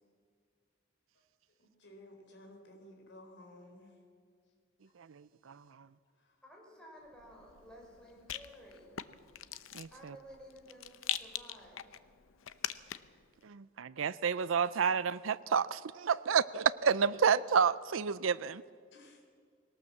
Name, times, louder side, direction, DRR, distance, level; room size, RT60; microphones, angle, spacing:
voice 1, 1.8-3.9 18.9-19.2, left 1 dB, 65° left, 3 dB, 3.9 m, -54 dB
voice 2, 5.1-5.6 9.7-10.2 13.4-18.6, right 6 dB, 85° right, 16 dB, 0.5 m, -30 dB
voice 3, 6.4-9.0 9.9-11.8, equal, 5° left, -2 dB, 5.4 m, -54 dB
Rattle, 7.1-13.2, left 11 dB, 90° left, 0.7 m, -43 dB
21.0 x 18.5 x 7.4 m, 2.1 s
head